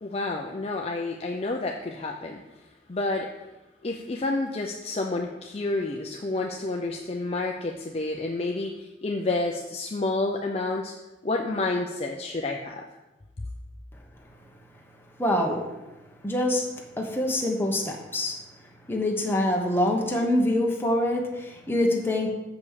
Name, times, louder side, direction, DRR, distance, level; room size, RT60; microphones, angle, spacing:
voice 1, 0.0-2.4 2.9-3.3 3.8-10.9 11.2-12.8, left 2 dB, 30° left, 1 dB, 0.5 m, -29 dB
voice 2, 15.2-15.7 16.2-16.7 17.0-18.4 18.9-22.3, left 1 dB, 10° left, 0 dB, 1.0 m, -25 dB
7.0 x 5.3 x 6.4 m, 1.0 s
head